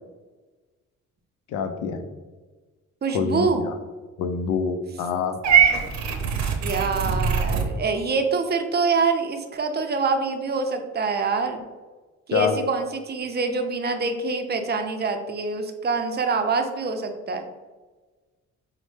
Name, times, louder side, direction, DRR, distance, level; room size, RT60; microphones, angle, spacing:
voice 1, 1.5-2.0 3.1-3.8 4.2-5.4 12.3-12.6, left 6 dB, 85° left, 8 dB, 0.5 m, -25 dB
voice 2, 3.0-3.7 6.6-11.6 12.3-17.5, right 4 dB, 35° right, 5 dB, 0.5 m, -25 dB
Purr / Meow, 5.4-7.7, right 7 dB, 65° right, 0.7 m, -21 dB
5.2 x 2.1 x 3.2 m, 1.3 s
cardioid pair, 90°, 30 cm